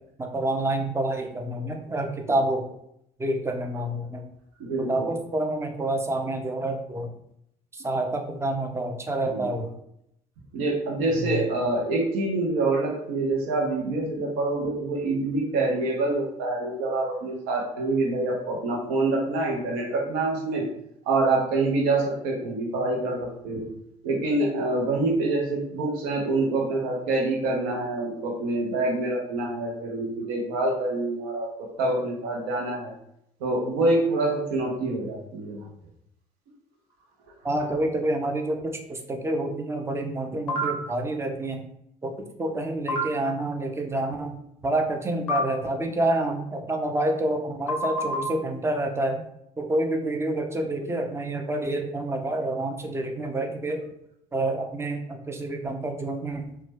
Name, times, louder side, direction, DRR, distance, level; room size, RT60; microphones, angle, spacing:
voice 1, 0.2-2.7 3.2-4.2 4.8-7.1 7.7-9.7 11.1-11.4 37.4-41.7 42.0-44.4 44.6-49.2 49.6-53.8 54.3-56.4, right 1 dB, 15° right, 4 dB, 0.5 m, -28 dB
voice 2, 4.6-5.1 9.3-9.5 10.5-20.7 21.1-23.7 24.0-32.9 33.4-35.7, right 2 dB, 65° right, 0 dB, 0.7 m, -26 dB
sound 1, 40.5-40.7 42.9-43.0 45.3-45.4 47.7-48.2, left 1 dB, 80° left, 0.5 m, -26 dB
2.9 x 2.2 x 3.2 m, 0.77 s
figure-of-eight pair, 55°, 18 cm